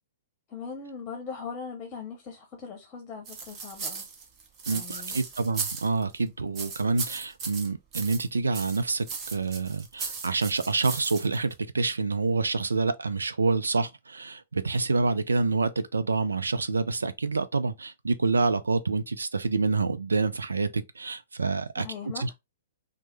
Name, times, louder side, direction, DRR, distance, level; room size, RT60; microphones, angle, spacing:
voice 1, 0.5-4.1 4.7-5.2 21.8-22.3, left 5 dB, 30° left, 0.8 m, -40 dB
sound 1, 3.2-6.2 6.5-8.3 8.5-11.5, right 5 dB, 30° right, 0.8 m, -36 dB
voice 2, 4.7-21.9 22.2-22.3, right 3 dB, 80° right, 0.4 m, -27 dB
3.1 x 2.0 x 3.1 m
figure-of-eight pair, 115°, 0 cm